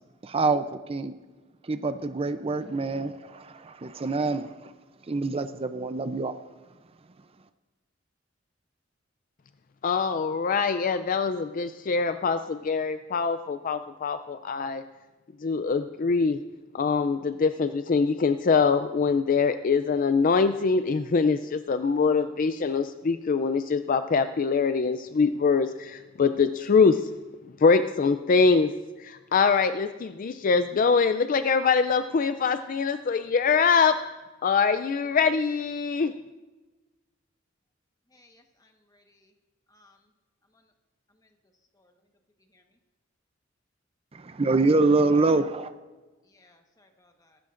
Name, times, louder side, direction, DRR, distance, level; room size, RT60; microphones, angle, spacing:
voice 1, 0.2-1.2 1.7-4.7 5.1-6.4 44.1-45.7, right 3 dB, 30° right, 10 dB, 0.5 m, -25 dB
voice 2, 9.8-14.8 15.4-16.4 16.7-27.1 27.6-28.7 29.0-34.0 34.4-36.1, left 5 dB, 45° left, 10 dB, 0.4 m, -23 dB
voice 3, 38.1-39.2 39.7-39.9 46.3-47.3, left 2 dB, 20° left, 4 dB, 1.2 m, -61 dB
23.5 x 13.0 x 2.5 m, 1.2 s
head